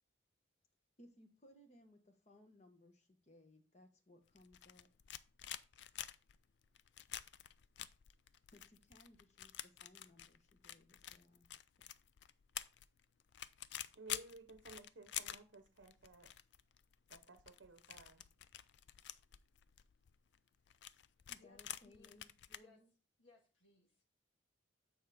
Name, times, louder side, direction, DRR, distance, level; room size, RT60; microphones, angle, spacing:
voice 1, 1.0-4.9 8.5-11.5 21.3-22.9, left 1 dB, 35° left, 1.0 m, -64 dB
sound 1, 4.3-22.6, left 12 dB, 60° left, 0.4 m, -49 dB
voice 2, 13.9-16.3 17.1-18.2, right 3 dB, 65° right, 0.7 m, -56 dB
voice 3, 21.4-22.2 22.6-22.8 23.2-24.0, left 4 dB, 85° left, 1.7 m, -66 dB
9.1 x 4.5 x 3.4 m
head